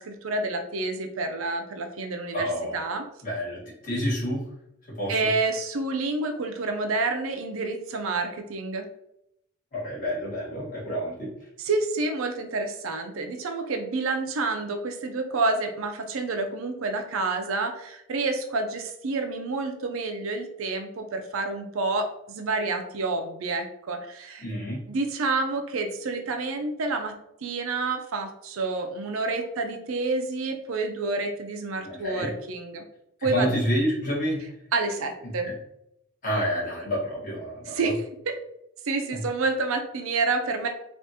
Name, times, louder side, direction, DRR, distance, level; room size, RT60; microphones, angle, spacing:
voice 1, 0.0-3.0 5.1-8.9 11.6-24.4 24.9-27.1 27.4-32.8 33.2-33.5 34.7-35.5 37.7-37.9 38.3-38.4 38.8-40.7, right 3 dB, 75° right, 5 dB, 0.5 m, -28 dB
voice 2, 2.3-2.8 3.2-4.4 4.9-5.2 9.7-11.3 24.4-24.8 31.8-32.3 33.2-34.4 35.2-35.5 36.2-37.9 39.1-39.2, equal, 40° left, -6 dB, 1.4 m, -29 dB
3.4 x 2.5 x 2.8 m, 0.79 s
head